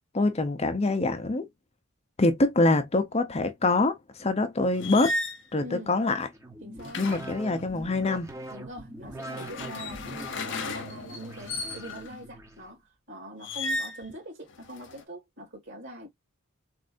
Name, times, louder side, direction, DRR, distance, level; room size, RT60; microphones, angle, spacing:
voice 1, 0.1-1.5 2.2-5.1 5.5-6.3 7.0-8.3, left 2 dB, 30° left, 0.6 m, -25 dB
sound 1, 4.7-5.4 6.8-8.1 9.1-12.2 13.4-14.0 14.5-15.0, left 2 dB, 60° left, 0.8 m, -35 dB
voice 2, 5.6-5.9 6.6-7.1 8.5-12.8 13.1-16.1, equal, 60° right, 2.6 m, -43 dB
sound 2, 6.3-12.7, right 1 dB, 15° right, 0.8 m, -43 dB
4.2 x 2.6 x 2.4 m
head